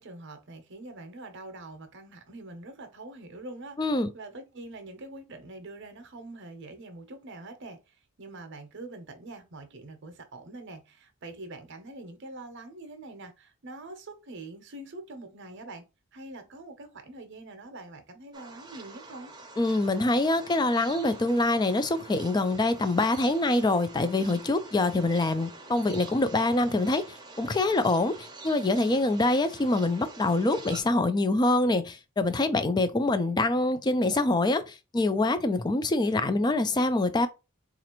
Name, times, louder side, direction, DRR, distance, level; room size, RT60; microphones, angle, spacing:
voice 1, 0.0-15.9 16.1-19.3, right 2 dB, 55° right, 0.7 m, -44 dB
voice 2, 3.8-4.1 19.6-37.3, left 2 dB, 20° left, 0.3 m, -25 dB
sound 1, 18.3-30.8, right 3 dB, 20° right, 0.6 m, -46 dB
4.0 x 2.5 x 2.9 m
head